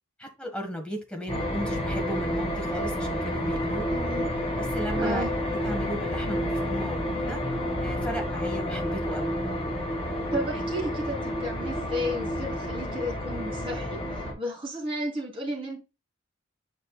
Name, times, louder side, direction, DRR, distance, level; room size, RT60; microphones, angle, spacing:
voice 1, 0.2-3.9 4.6-7.4 7.8-9.3, equal, 5° left, 1.6 m, -35 dB
sound 1, 1.3-14.3, equal, 30° left, 2.9 m, -30 dB
voice 2, 3.9-4.3 5.0-5.3 10.3-15.8, equal, 25° right, 3.3 m, -33 dB
9.8 x 5.1 x 2.3 m
head